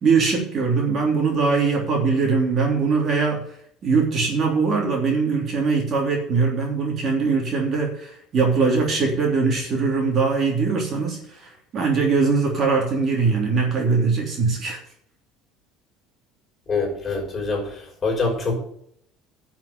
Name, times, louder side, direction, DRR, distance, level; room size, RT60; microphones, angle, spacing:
voice 1, 0.0-3.4 3.8-14.8, right 4 dB, 35° right, 0 dB, 3.3 m, -21 dB
voice 2, 16.7-18.6, left 3 dB, 25° left, -1 dB, 5.6 m, -25 dB
11.0 x 6.0 x 8.1 m, 0.68 s
cardioid pair, 140°, 0 cm